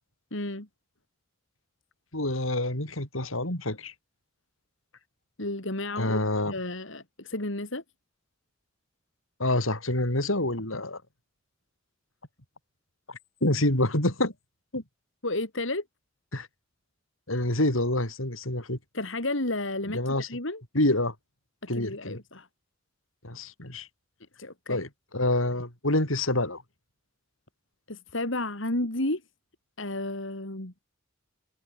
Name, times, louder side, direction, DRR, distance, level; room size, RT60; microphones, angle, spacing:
voice 1, 0.3-0.7 5.4-7.8 15.2-15.8 18.9-20.6 21.7-22.5 24.4-24.9 27.9-29.2 29.8-30.7, left 2 dB, 70° left, 4.1 m, -32 dB
voice 2, 2.1-3.9 6.0-6.6 9.4-11.0 13.1-14.3 14.7-14.8 16.3-16.5 17.3-18.8 19.9-20.3 20.7-21.1 21.7-22.2 23.2-23.9 24.7-26.6, left 1 dB, 85° left, 6.9 m, -27 dB
head